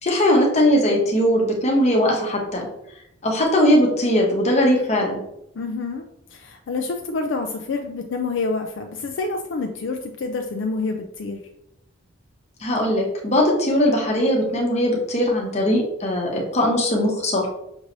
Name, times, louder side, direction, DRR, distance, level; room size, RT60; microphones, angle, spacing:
voice 1, 0.0-2.7 3.2-5.2 12.6-17.5, left 1 dB, 30° left, -1 dB, 0.9 m, -20 dB
voice 2, 5.6-6.0 6.3-11.4, left 3 dB, 60° left, 4 dB, 0.4 m, -27 dB
6.3 x 3.1 x 2.6 m, 0.82 s
head